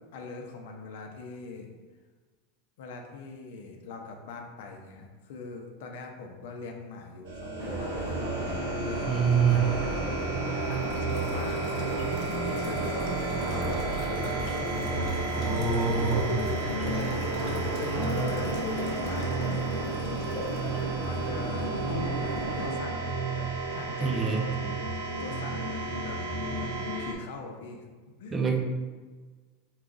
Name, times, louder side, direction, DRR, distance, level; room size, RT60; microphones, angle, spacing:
voice 1, 0.1-1.7 2.8-8.1 8.8-9.0 9.5-10.1 10.6-11.7 12.2-14.4 15.7-16.3 17.0-17.5 17.7-20.3 20.7-26.2 26.5-27.9 28.2-28.6, left 4 dB, 70° left, 3 dB, 0.6 m, -42 dB
sound 1, 7.2-27.1, right 3 dB, 90° right, 0.7 m, -32 dB
sound 2, 7.6-22.7, right 1 dB, 55° right, 1.0 m, -35 dB
voice 2, 9.0-9.6 15.3-16.4 24.0-24.4 28.3-28.6, right 6 dB, 15° right, 2 dB, 0.5 m, -25 dB
sound 3, 10.4-20.8 21.1-21.2, left 1 dB, 40° left, 0.9 m, -41 dB
4.7 x 2.3 x 3.8 m, 1.4 s
supercardioid pair, 155°, 0 cm